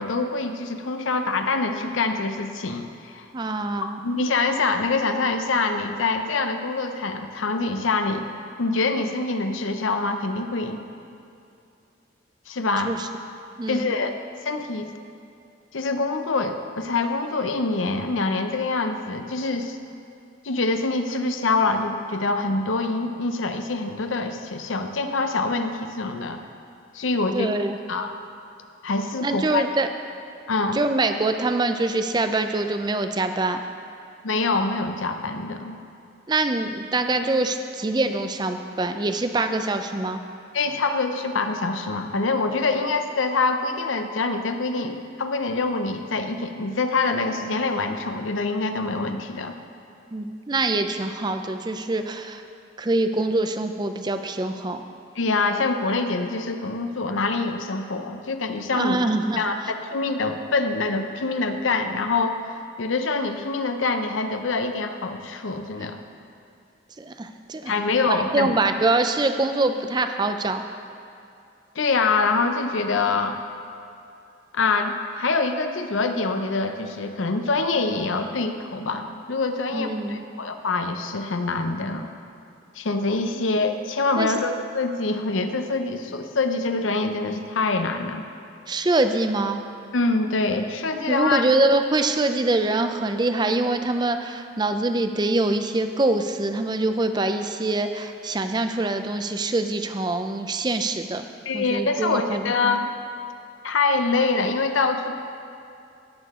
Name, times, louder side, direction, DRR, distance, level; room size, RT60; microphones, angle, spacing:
voice 1, 0.0-3.3 4.0-8.3 8.6-10.8 12.5-12.9 13.7-14.1 14.4-14.9 15.7-19.8 20.4-26.4 26.9-27.5 27.9-28.1 28.8-29.6 30.5-30.8 34.2-35.8 40.5-49.5 55.2-59.0 59.4-62.4 62.8-66.0 67.7-68.5 71.7-73.4 74.5-82.1 82.8-88.2 89.9-91.5 101.5-102.9 103.6-105.2, left 3 dB, 90° left, 7 dB, 0.7 m, -25 dB
voice 2, 3.3-4.0 12.8-13.1 13.6-13.9 27.3-27.8 29.2-29.9 30.7-33.6 36.3-40.2 50.1-52.4 52.8-54.8 58.7-59.7 67.0-67.7 68.1-70.6 79.7-80.2 84.2-84.3 88.7-89.6 91.1-101.3 101.5-102.8, right 2 dB, 20° right, 7 dB, 0.4 m, -24 dB
17.5 x 6.6 x 3.7 m, 2.6 s
head